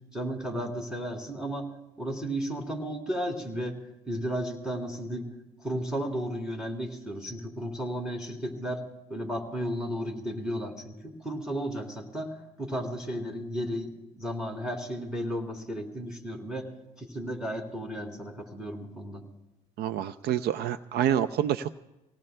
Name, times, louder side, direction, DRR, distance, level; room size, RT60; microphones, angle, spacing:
voice 1, 0.1-1.7 2.0-3.8 4.1-5.3 5.6-8.8 9.1-16.7 17.0-19.2, equal, 5° right, 0 dB, 3.2 m, -34 dB
voice 2, 19.8-21.7, right 10 dB, 70° right, 12 dB, 0.5 m, -27 dB
26.5 x 18.0 x 2.2 m, 0.98 s
cardioid pair, 110°, 17 cm